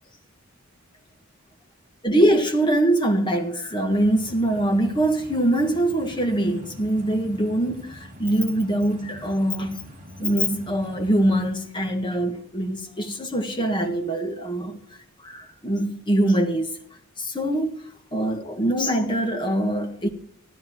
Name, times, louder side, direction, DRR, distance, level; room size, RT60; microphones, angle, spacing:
voice 1, 2.0-9.8 10.2-14.8 15.2-16.8 17.2-17.8 18.1-20.1, right 1 dB, 20° left, 1.6 m, -23 dB
sound 1, 3.9-11.5, equal, 35° right, 2.9 m, -44 dB
15.5 x 9.9 x 4.6 m
head